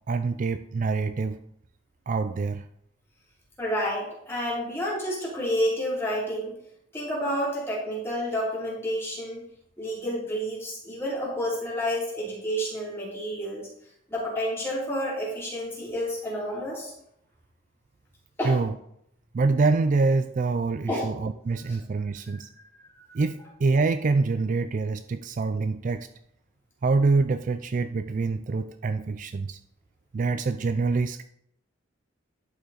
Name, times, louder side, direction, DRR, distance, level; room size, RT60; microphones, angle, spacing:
voice 1, 0.1-1.4 2.1-2.7 18.4-18.7 19.3-22.5 23.1-26.1 26.8-29.6 30.1-31.2, right 3 dB, 40° right, 10 dB, 0.3 m, -25 dB
voice 2, 3.6-6.5 6.9-9.4 9.8-13.7 14.1-16.9 18.4-18.6 20.9-21.1 21.7-21.8 22.3-22.6, equal, 10° left, -6 dB, 3.4 m, -30 dB
11.0 x 5.6 x 4.2 m, 0.73 s
head